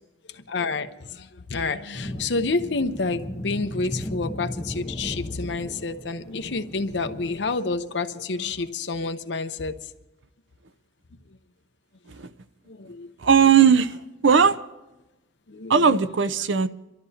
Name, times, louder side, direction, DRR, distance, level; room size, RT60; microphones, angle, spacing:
voice 1, 0.3-9.9 12.7-13.1 15.5-15.9, left 3 dB, 70° left, 0.8 m, -29 dB
sound 1, 1.9-7.5, left 1 dB, 15° left, 1.0 m, -36 dB
voice 2, 13.2-14.0 14.2-14.6 15.7-16.7, right 6 dB, 90° right, 0.6 m, -18 dB
27.0 x 13.0 x 2.8 m
head